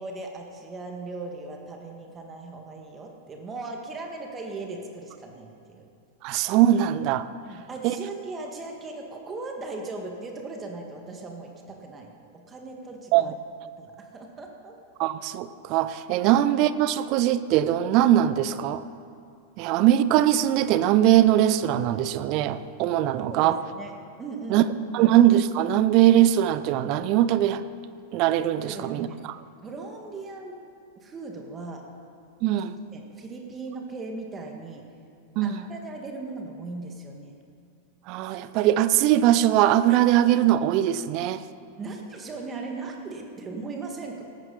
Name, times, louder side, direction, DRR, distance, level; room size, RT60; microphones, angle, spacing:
voice 1, 0.0-5.9 7.5-13.3 13.6-14.7 23.3-23.9 24.2-24.7 25.0-25.1 28.6-29.2 29.6-30.6 31.0-31.8 32.9-34.8 35.4-37.3 41.8-44.2, right 3 dB, 20° right, 2 dB, 2.0 m, -38 dB
voice 2, 6.2-7.2 7.8-7.9 13.1-13.3 15.0-18.8 19.6-23.6 24.5-24.6 24.9-27.6 28.1-29.4 32.4-32.8 35.4-35.7 38.1-41.4, right 12 dB, 40° right, 14 dB, 0.7 m, -21 dB
18.0 x 14.5 x 4.2 m, 2.4 s
figure-of-eight pair, 90°, 0 cm